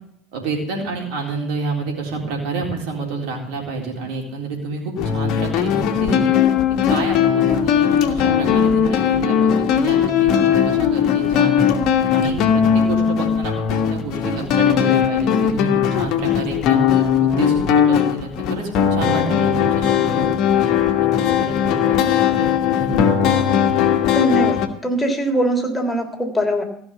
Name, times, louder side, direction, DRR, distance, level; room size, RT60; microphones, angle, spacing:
voice 1, 0.3-6.3 6.9-11.7 12.1-16.8 17.2-21.1 21.4-22.5 22.8-23.2, right 3 dB, 65° right, 0 dB, 3.8 m, -29 dB
sound 1, 5.0-24.7, left 8 dB, 55° left, 1.4 m, -18 dB
voice 2, 24.1-26.6, right 1 dB, 10° left, 1 dB, 3.6 m, -21 dB
15.0 x 5.9 x 8.1 m, 0.68 s
hypercardioid pair, 70°, 0 cm